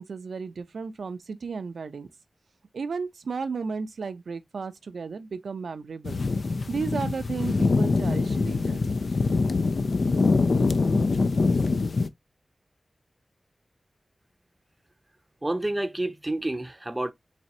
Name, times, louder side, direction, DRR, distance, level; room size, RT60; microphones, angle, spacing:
voice 1, 0.0-2.1 2.7-6.2 6.7-8.8 9.4-9.6, right 5 dB, 90° right, 0.4 m, -34 dB
sound 1, 6.0-12.1, left 3 dB, 65° left, 0.4 m, -24 dB
voice 2, 15.4-17.1, right 1 dB, 20° right, 0.6 m, -29 dB
4.1 x 3.3 x 2.7 m
wide cardioid pair, 70°, 0 cm